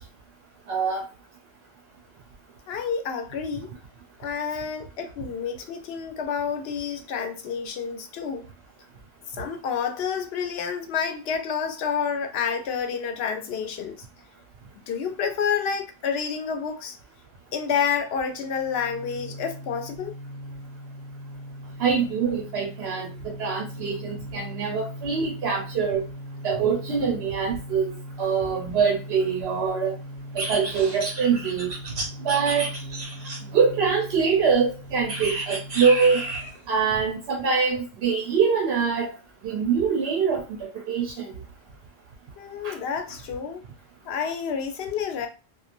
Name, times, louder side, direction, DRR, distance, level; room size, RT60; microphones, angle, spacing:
voice 1, 0.7-1.0 21.8-26.0 26.4-29.9 30.3-31.7 32.2-32.7 33.5-36.2 36.7-39.1 39.4-41.3 42.6-42.8, right 6 dB, 85° right, 0 dB, 0.9 m, -24 dB
voice 2, 2.7-3.7 4.2-8.4 9.4-14.0 14.9-17.0 17.5-20.1 42.4-43.6 44.0-45.3, left 6 dB, 80° left, 6 dB, 0.8 m, -29 dB
sound 1, 18.3-36.6, equal, 45° left, 0.7 m, -40 dB
sound 2, 30.4-33.6 35.1-36.6, right 2 dB, 45° right, 0.8 m, -32 dB
2.9 x 2.3 x 2.5 m, 0.33 s
omnidirectional pair, 1.0 m